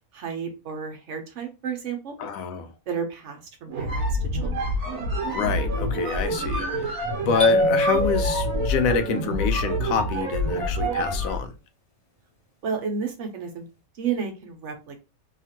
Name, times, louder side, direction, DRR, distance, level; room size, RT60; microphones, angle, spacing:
voice 1, 0.1-2.1 2.9-4.8 12.6-13.6 13.9-15.0, right 6 dB, 60° right, 1.0 m, -32 dB
voice 2, 2.2-2.7 5.3-11.5, left 6 dB, 75° left, 1.0 m, -27 dB
sound 1, 3.7-11.5, equal, 80° right, 1.2 m, -27 dB
sound 2, 7.4-9.3, left 1 dB, 40° left, 0.6 m, -24 dB
2.8 x 2.4 x 2.8 m
omnidirectional pair, 1.5 m